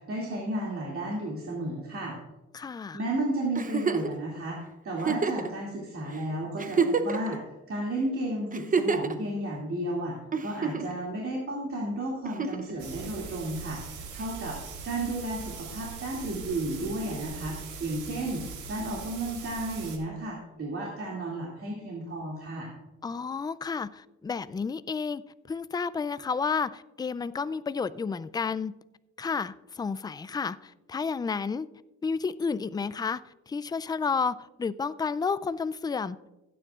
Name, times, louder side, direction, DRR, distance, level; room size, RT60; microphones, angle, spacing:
voice 1, 0.0-2.2 2.9-4.6 4.8-7.4 7.7-14.6 14.8-22.7, right 1 dB, 45° right, 2.5 m, -33 dB
voice 2, 2.5-3.0 23.0-25.2 25.5-28.7 29.2-31.7 32.0-36.3, left 5 dB, 15° left, 0.3 m, -31 dB
Giggle, 3.5-4.1 5.0-5.5 6.1-6.2 6.6-7.3 8.5-9.1 10.3-11.0 12.2-12.7 14.2-14.3, right 5 dB, 25° right, 0.7 m, -27 dB
sound 1, 12.8-20.0, right 5 dB, 85° right, 1.8 m, -41 dB
16.0 x 9.3 x 2.4 m
cardioid pair, 90°, 30 cm